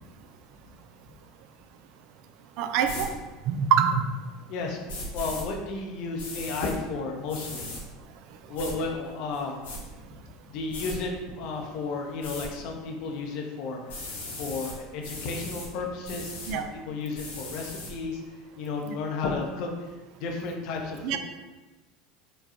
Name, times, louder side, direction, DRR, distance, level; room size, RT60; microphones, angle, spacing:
voice 1, 2.6-3.1 3.5-4.0 16.5-16.6 18.9-19.0 21.0-21.2, right 8 dB, 60° right, 8 dB, 0.3 m, -24 dB
sound 1, 2.8-3.1 4.9-5.4 6.2-6.7 7.3-7.8 8.5-8.7 9.3-9.8 10.7-10.9 12.2-12.5 13.9-14.7 15.0-15.7 16.0-16.5 17.1-17.9, left 1 dB, 85° left, 1.0 m, -37 dB
voice 2, 4.5-7.7 8.5-9.6 10.5-13.8 14.4-18.2 18.6-19.7 20.2-21.2, left 3 dB, 60° left, 1 dB, 0.6 m, -33 dB
4.8 x 2.3 x 2.7 m, 1.2 s
hypercardioid pair, 80°, 0 cm